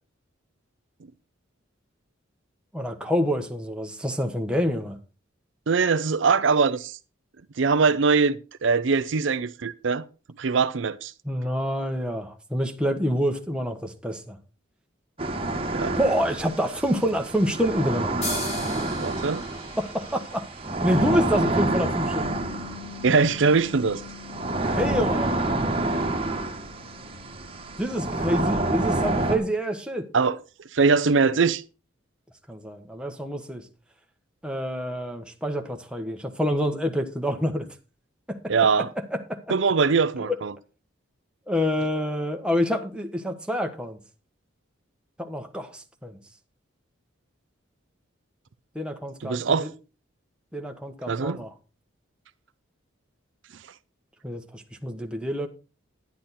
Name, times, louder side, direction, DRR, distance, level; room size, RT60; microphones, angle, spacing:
voice 1, 2.7-5.0 11.2-14.4 16.0-18.2 19.8-20.5 20.8-22.4 24.7-25.6 27.8-30.1 32.5-33.7 34.4-37.7 38.3-38.5 39.1-39.5 40.2-40.4 41.5-44.0 45.2-46.2 48.7-49.7 50.5-51.5 54.2-55.5, equal, 5° right, 1.2 m, -27 dB
voice 2, 5.7-7.0 7.6-10.0 10.4-11.1 15.7-16.0 19.0-19.4 23.0-24.0 24.6-24.7 30.1-30.4 30.7-31.6 38.5-38.9 39.5-40.5 49.2-49.7 51.1-51.4, right 4 dB, 65° right, 0.5 m, -22 dB
sound 1, 15.2-29.4, right 2 dB, 25° right, 1.5 m, -28 dB
sound 2, 18.2-21.8, left 1 dB, 30° left, 5.2 m, -37 dB
Bass guitar, 22.1-28.4, left 12 dB, 50° left, 5.7 m, -46 dB
10.5 x 10.5 x 4.2 m
head